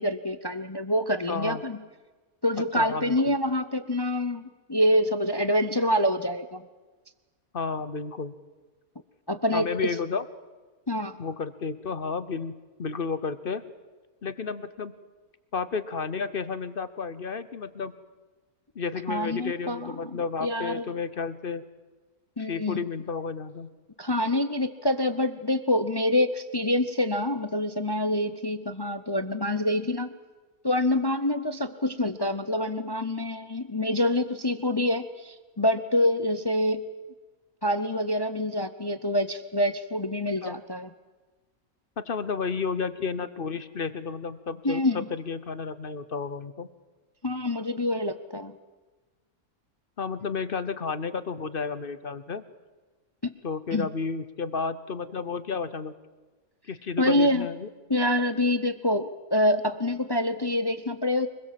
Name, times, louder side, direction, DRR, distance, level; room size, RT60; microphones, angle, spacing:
voice 1, 0.0-1.8 2.4-6.6 9.3-9.9 10.9-11.2 19.1-20.8 22.4-22.9 24.0-30.1 30.6-36.9 37.6-40.9 44.6-45.1 47.2-48.5 53.2-53.3 53.7-53.9 57.0-57.5 57.9-61.3, left 1 dB, 25° left, 11 dB, 0.6 m, -26 dB
voice 2, 1.3-1.6 2.7-3.2 7.5-8.3 9.5-10.2 11.2-13.6 14.2-14.9 15.5-17.9 18.7-21.6 22.4-23.7 40.4-40.6 42.0-46.7 50.0-52.4 53.4-55.9 56.7-57.7, left 5 dB, 45° left, 13 dB, 1.0 m, -32 dB
25.0 x 20.5 x 7.6 m, 1.3 s
omnidirectional pair, 1.5 m